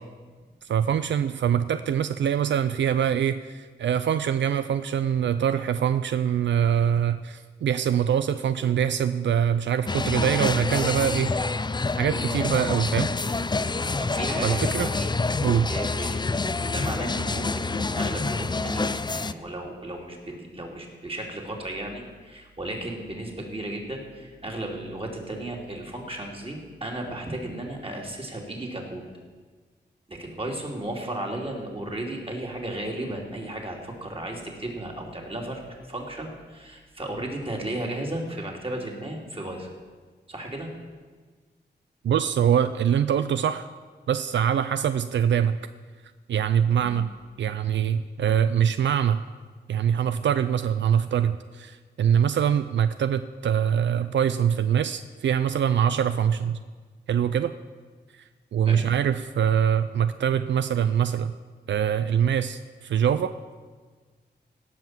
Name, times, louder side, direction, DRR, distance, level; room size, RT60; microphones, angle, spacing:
voice 1, 0.6-11.3 12.0-13.1 14.4-14.9 15.4-15.7 42.0-43.7 44.1-45.6 46.3-47.1 47.4-49.2 49.7-56.6 57.1-57.5 58.5-61.3 61.7-63.3, right 8 dB, 85° right, 12 dB, 0.4 m, -24 dB
sound 1, 9.9-19.3, left 3 dB, 25° left, 0.5 m, -27 dB
voice 2, 14.0-15.1 15.7-16.2 16.7-29.0 30.1-39.7 40.3-40.7 46.8-47.0 58.7-58.9, right 1 dB, 30° right, 0 dB, 2.9 m, -34 dB
17.0 x 5.8 x 7.4 m, 1.4 s
cardioid pair, 60°, 18 cm